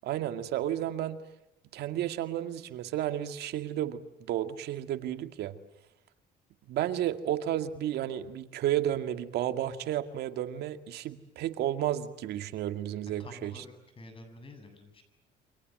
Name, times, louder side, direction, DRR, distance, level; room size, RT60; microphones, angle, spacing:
voice 1, 0.0-1.2 1.7-4.0 4.3-5.5 6.7-13.5, right 12 dB, 75° right, 8 dB, 2.2 m, -32 dB
voice 2, 13.2-15.0, left 2 dB, 30° left, 7 dB, 8.0 m, -49 dB
29.0 x 26.0 x 7.8 m, 0.85 s
cardioid pair, 110°, 17 cm